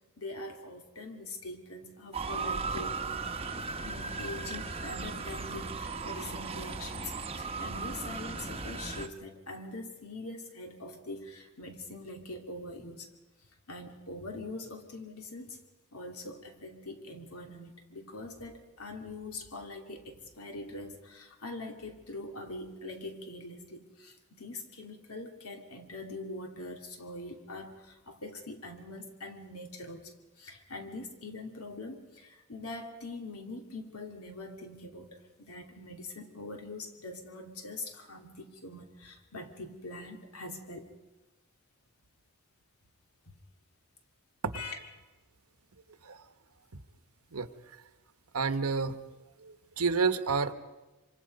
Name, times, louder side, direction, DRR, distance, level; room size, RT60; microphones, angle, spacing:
voice 1, 0.2-3.0 3.8-13.1 13.7-15.6 15.9-40.9 43.3-43.4 44.5-44.9, left 2 dB, 80° left, 4 dB, 2.7 m, -43 dB
Motor vehicle (road) / Siren, 2.1-9.1, right 4 dB, 25° right, 1.0 m, -37 dB
voice 2, 48.3-49.0 49.4-50.5, right 4 dB, 85° right, 10 dB, 1.2 m, -29 dB
25.5 x 25.0 x 5.3 m, 1.1 s
head